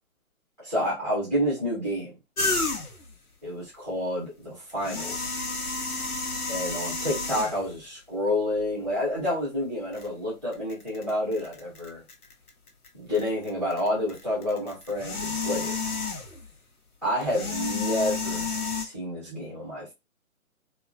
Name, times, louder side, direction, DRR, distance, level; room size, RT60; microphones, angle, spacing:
voice 1, 0.6-2.1 3.4-5.4 6.5-12.0 12.9-15.7 17.0-18.5 18.7-19.9, left 1 dB, ahead, 0.6 m, -29 dB
sound 1, 2.4-3.1 4.7-7.8 8.6-8.7 9.9-10.1 10.5-12.9 13.1-16.5 17.2-18.8, left 4 dB, 85° left, 0.9 m, -31 dB
2.9 x 2.3 x 2.4 m
figure-of-eight pair, 135°, 44 cm